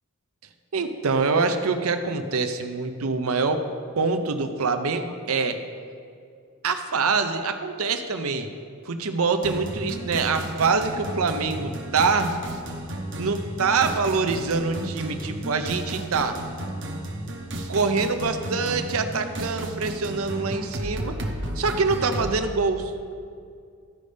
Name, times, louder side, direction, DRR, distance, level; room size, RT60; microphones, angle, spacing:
voice 1, 0.7-3.6 4.0-5.6 6.6-8.5 8.8-12.4 13.2-16.4 17.7-21.2 21.6-22.9, right 4 dB, 80° right, 7 dB, 0.7 m, -25 dB
sound 1, 9.4-22.4, right 1 dB, 55° right, 0.9 m, -33 dB
14.0 x 5.3 x 3.4 m, 2.3 s
head